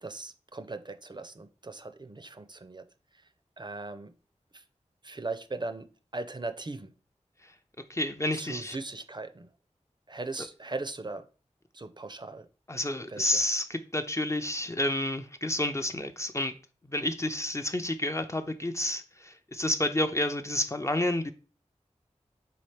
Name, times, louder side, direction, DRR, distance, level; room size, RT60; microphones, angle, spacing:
voice 1, 0.0-2.8 3.6-4.1 4.5-4.6 5.0-5.9 6.1-6.9 8.3-9.5 10.1-11.3 11.7-12.5 13.1-13.4, right 3 dB, 35° right, 0.5 m, -38 dB
voice 2, 7.9-8.8 10.4-10.5 12.7-16.5 16.8-21.3, left 1 dB, 25° left, 0.4 m, -30 dB
4.2 x 3.8 x 3.2 m
wide cardioid pair, 40°, 13 cm